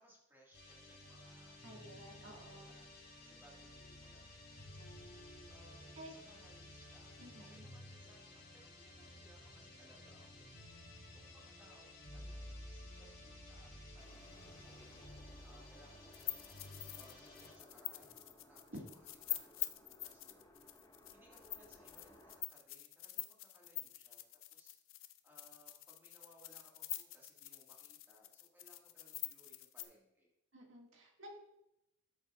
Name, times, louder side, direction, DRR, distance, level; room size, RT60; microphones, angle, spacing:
voice 1, 0.0-20.9 21.1-24.3 24.5-30.3, equal, 10° right, -4 dB, 1.8 m, -66 dB
sound 1, 0.5-17.5, left 1 dB, 55° left, 3.0 m, -54 dB
voice 2, 1.6-2.7 6.0-6.1 7.2-7.6 18.7-18.8 30.5-31.3, equal, 70° right, 0 dB, 1.9 m, -52 dB
sound 2, 14.0-22.4, left 1 dB, 20° left, 1.0 m, -62 dB
sound 3, 16.1-29.8, left 15 dB, 75° left, 0.5 m, -45 dB
13.0 x 6.8 x 2.4 m, 0.86 s
head